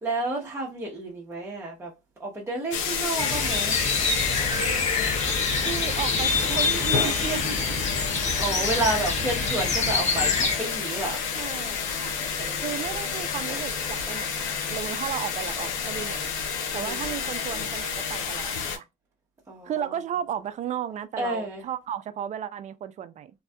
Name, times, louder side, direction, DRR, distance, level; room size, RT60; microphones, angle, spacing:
voice 1, 0.0-1.9 2.2-3.8 8.4-11.2 12.3-12.7 16.7-17.1 19.5-19.8 21.2-21.6, right 2 dB, 15° right, 0.8 m, -30 dB
sound 1, 2.7-18.8, left 6 dB, 80° left, 0.6 m, -29 dB
sound 2, 3.2-10.5, left 4 dB, 35° left, 0.8 m, -27 dB
voice 2, 5.6-7.6 11.4-16.2 16.7-18.9 19.6-23.3, right 9 dB, 35° right, 0.4 m, -34 dB
2.6 x 2.2 x 2.2 m
supercardioid pair, 85°, 20 cm